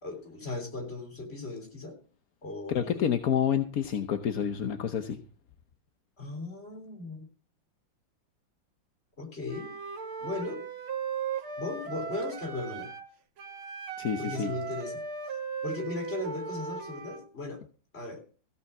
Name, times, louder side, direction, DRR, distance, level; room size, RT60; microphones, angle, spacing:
voice 1, 0.0-2.0 2.4-3.1 6.2-7.3 9.2-9.7 10.2-10.6 11.6-12.9 14.2-15.0 15.6-17.6 17.9-18.2, left 2 dB, 30° left, 5 dB, 3.5 m, -37 dB
voice 2, 2.7-5.2 14.0-14.5, left 8 dB, 55° left, 8 dB, 1.1 m, -28 dB
Wind instrument woodwind instrument, 9.5-13.1 13.4-17.3, right 6 dB, 85° right, 2.3 m, -37 dB
15.0 x 5.7 x 7.1 m, 0.38 s
omnidirectional pair, 2.2 m